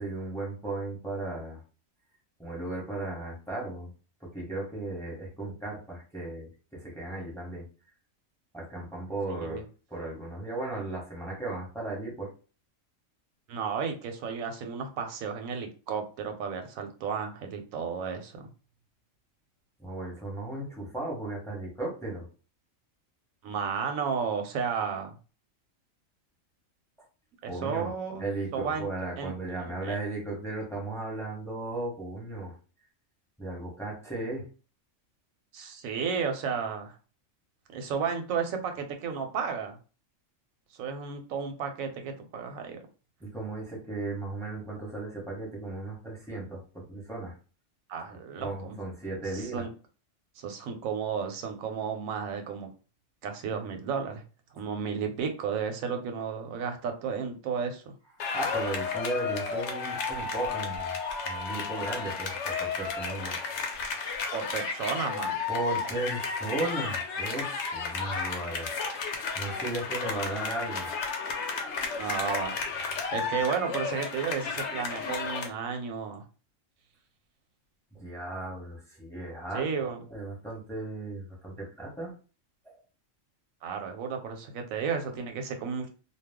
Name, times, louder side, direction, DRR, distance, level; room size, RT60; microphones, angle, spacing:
voice 1, 0.0-1.6 2.4-3.9 4.2-7.6 8.5-12.3 19.8-22.3 27.5-27.9 28.2-32.5 33.4-34.5 43.2-47.3 48.4-49.6 58.3-60.9 61.2-63.4 65.5-69.0 69.3-70.9 77.9-82.1 82.6-82.8, right 2 dB, 5° left, -3 dB, 0.9 m, -36 dB
voice 2, 9.3-9.6 13.5-18.5 23.4-25.2 27.4-28.2 28.5-28.9 29.2-29.3 29.6-30.0 35.5-37.0 37.7-39.8 40.7-42.8 47.9-48.8 49.3-49.7 50.4-52.7 53.2-54.2 54.5-57.9 64.3-65.4 72.0-72.7 73.1-76.2 79.5-80.0 83.6-85.9, right 6 dB, 90° right, 5 dB, 1.0 m, -33 dB
sound 1, 58.2-75.5, left 5 dB, 65° left, 0.8 m, -33 dB
2.3 x 2.2 x 3.5 m, 0.36 s
omnidirectional pair, 1.4 m